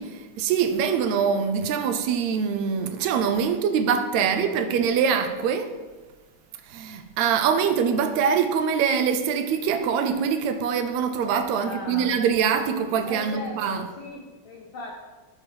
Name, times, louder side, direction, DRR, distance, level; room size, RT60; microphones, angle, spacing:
voice 1, 0.0-5.7 6.7-13.8, right 7 dB, 80° right, 1.7 m, -24 dB
voice 2, 4.1-4.7 11.6-12.1 13.0-14.9, left 3 dB, 80° left, 1.1 m, -38 dB
12.5 x 4.6 x 3.3 m
omnidirectional pair, 3.4 m